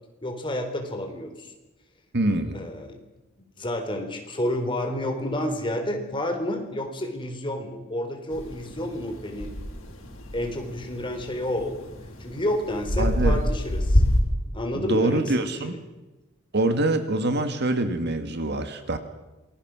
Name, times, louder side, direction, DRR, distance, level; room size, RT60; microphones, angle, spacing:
voice 1, 0.2-1.5 2.5-3.0 3.6-9.5 10.3-11.9 12.2-14.0 14.4-15.8, left 1 dB, 25° left, 4 dB, 4.1 m, -30 dB
voice 2, 2.1-2.6 13.0-13.4 14.7-15.7 16.5-19.0, right 2 dB, 55° right, 8 dB, 2.1 m, -25 dB
sound 1, 8.3-14.2, left 1 dB, 80° left, 5.7 m, -27 dB
27.5 x 21.5 x 6.2 m, 1.1 s
head